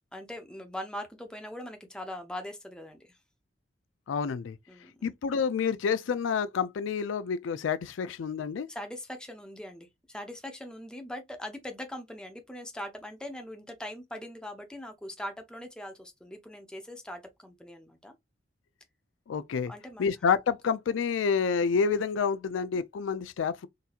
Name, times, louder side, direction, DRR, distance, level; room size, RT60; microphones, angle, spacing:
voice 1, 0.1-3.2 4.7-5.1 8.7-18.1 19.7-20.1, left 1 dB, 5° left, 0.6 m, -41 dB
voice 2, 4.1-4.6 5.0-8.7 19.3-19.7 20.0-23.7, left 6 dB, 90° left, 0.4 m, -28 dB
3.9 x 2.7 x 2.5 m
head